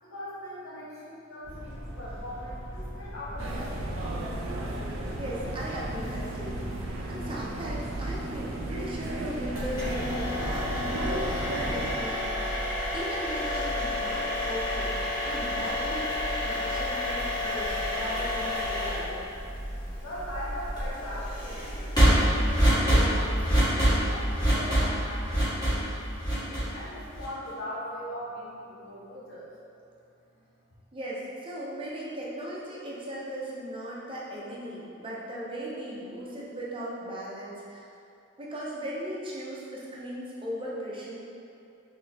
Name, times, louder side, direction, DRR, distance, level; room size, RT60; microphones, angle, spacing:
voice 1, 0.0-4.2 19.4-19.5 20.0-25.9 26.3-29.5 30.3-30.4, equal, 90° left, -7 dB, 1.0 m, -40 dB
sound 1, 1.4-7.8, equal, 50° left, 1.5 m, -40 dB
sound 2, 3.4-12.0, right 1 dB, 85° right, 0.5 m, -34 dB
voice 2, 5.2-19.1 30.9-37.9 38.4-41.2, right 1 dB, 25° right, -6 dB, 0.6 m, -38 dB
sound 3, 9.6-27.5, equal, 20° left, 1.5 m, -28 dB
3.8 x 3.2 x 2.8 m, 2.6 s
head